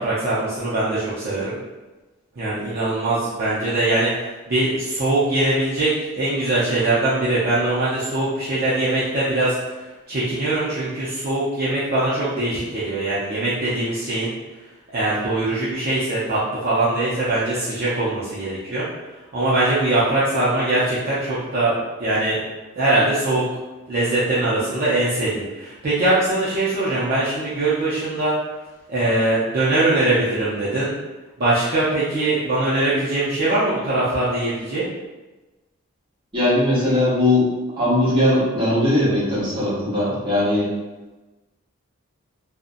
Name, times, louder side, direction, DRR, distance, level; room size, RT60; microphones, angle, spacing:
voice 1, 0.0-1.6 2.4-14.3 14.9-18.9 19.3-22.4 22.8-23.4 23.9-28.3 28.9-31.0 31.4-34.9, right 2 dB, 45° right, -10 dB, 0.5 m, -22 dB
voice 2, 36.3-37.5 37.8-40.7, left 1 dB, 25° right, -9 dB, 0.8 m, -19 dB
2.5 x 2.0 x 2.5 m, 1.2 s
head